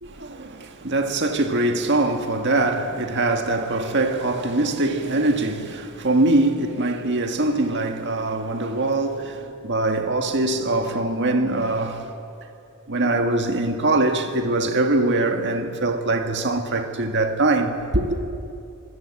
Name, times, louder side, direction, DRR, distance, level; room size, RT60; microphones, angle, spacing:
voice 1, 0.0-12.1 12.9-18.2, right 2 dB, 55° right, 1.8 m, -23 dB
25.5 x 17.5 x 8.5 m
head